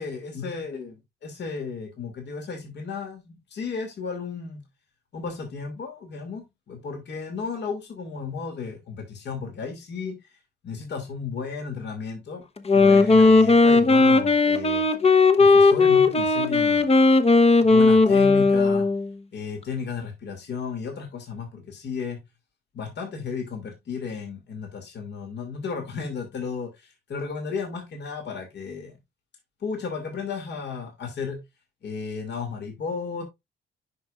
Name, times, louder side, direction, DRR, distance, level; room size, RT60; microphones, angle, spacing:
voice 1, 0.0-4.6 5.1-10.2 10.6-12.4 12.7-14.9 15.4-16.9 17.6-18.9 19.3-22.2 22.7-29.0 29.6-31.4 31.8-33.2, left 5 dB, 60° left, 2.6 m, -34 dB
Wind instrument woodwind instrument, 12.6-19.1, left 3 dB, 30° left, 1.1 m, -17 dB
10.0 x 5.4 x 2.5 m
cardioid pair, 90°, 20 cm